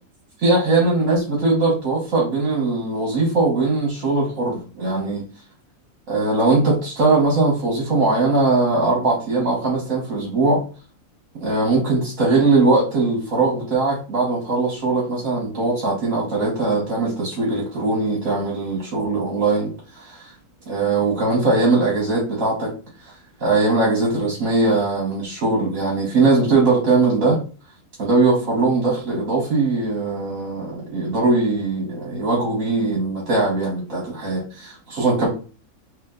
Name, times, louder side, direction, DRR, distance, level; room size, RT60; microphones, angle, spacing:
voice 1, 0.4-5.2 6.1-10.6 11.4-20.3 20.7-22.7 23.4-27.4 28.0-35.3, right 3 dB, 65° right, -4 dB, 1.6 m, -20 dB
3.7 x 3.0 x 3.7 m, 0.37 s
omnidirectional pair, 1.5 m